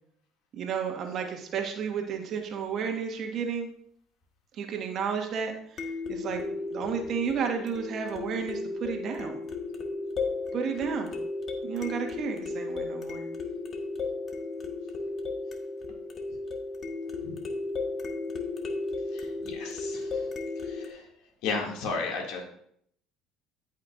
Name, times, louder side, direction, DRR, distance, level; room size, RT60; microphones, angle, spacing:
voice 1, 0.5-3.7 4.5-6.4 6.7-9.4 10.5-11.1 11.6-13.2, right 6 dB, 55° right, 3 dB, 1.6 m, -32 dB
sound 1, 1.1-1.2 5.8-20.9, left 3 dB, 45° left, 1.4 m, -35 dB
voice 2, 19.1-20.3 20.6-21.1 21.4-22.4, left 4 dB, 70° left, 0 dB, 2.3 m, -34 dB
14.0 x 5.6 x 2.5 m, 0.68 s
hypercardioid pair, 75°, 0 cm